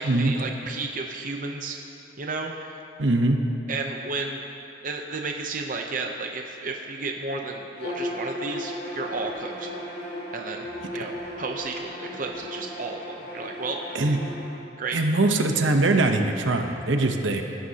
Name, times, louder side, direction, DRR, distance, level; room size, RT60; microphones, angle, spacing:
voice 1, 0.0-1.8 2.2-2.8 3.7-4.4 4.8-9.7 10.3-10.7 10.9-13.8 14.8-15.0, right 3 dB, 45° right, 2 dB, 0.7 m, -32 dB
voice 2, 3.0-3.4 13.9-14.2 14.9-17.4, right 2 dB, 75° right, 4 dB, 0.9 m, -22 dB
Bowed string instrument, 7.8-14.5, left 1 dB, 70° left, 3.1 m, -36 dB
19.5 x 11.0 x 2.9 m, 2.7 s
head